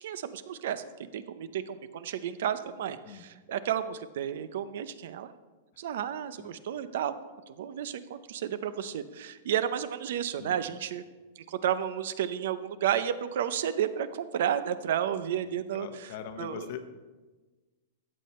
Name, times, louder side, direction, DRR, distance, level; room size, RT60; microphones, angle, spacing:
voice 1, 0.0-5.3 5.8-7.1 7.5-11.0 11.5-16.1 16.4-16.7, right 9 dB, 60° right, 13 dB, 0.6 m, -32 dB
voice 2, 15.4-16.8, left 9 dB, 45° left, 10 dB, 0.9 m, -42 dB
14.0 x 8.4 x 4.3 m, 1.3 s
supercardioid pair, 170°, 0 cm